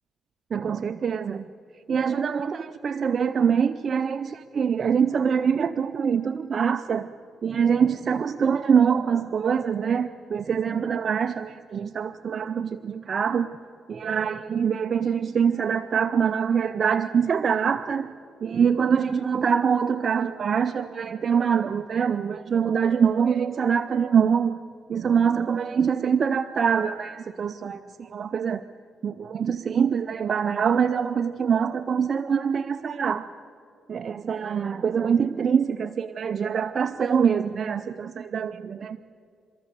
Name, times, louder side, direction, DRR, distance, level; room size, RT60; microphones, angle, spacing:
voice 1, 0.5-1.5 1.9-7.1 7.4-13.5 13.9-18.1 18.4-24.6 24.9-28.6 29.0-33.3 33.9-39.0, right 7 dB, 50° right, 10 dB, 0.5 m, -24 dB
29.0 x 13.5 x 7.0 m, 2.5 s
cardioid pair, 90°, 0 cm